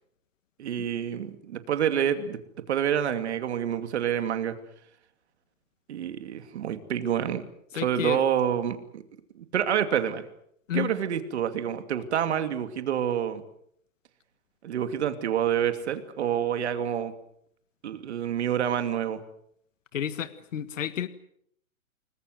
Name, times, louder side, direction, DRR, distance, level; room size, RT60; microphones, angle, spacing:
voice 1, 0.6-2.4 2.7-4.6 5.9-7.4 7.7-9.0 9.3-10.2 10.7-13.4 14.6-17.1 17.8-19.2, right 9 dB, 50° right, 9 dB, 2.7 m, -27 dB
voice 2, 7.7-8.2 10.7-10.9 19.9-21.1, left 9 dB, 60° left, 12 dB, 1.8 m, -31 dB
29.0 x 21.0 x 8.0 m, 0.70 s
hypercardioid pair, 160°, 42 cm